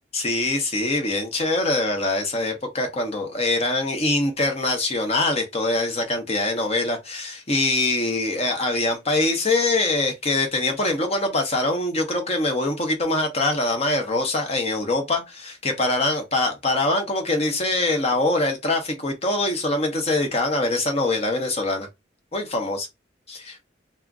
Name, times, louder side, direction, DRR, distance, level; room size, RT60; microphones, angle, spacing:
voice 1, 0.1-21.9 22.3-22.9 23.3-23.5, left 2 dB, 35° left, 0.7 m, -23 dB
2.4 x 2.0 x 3.5 m
head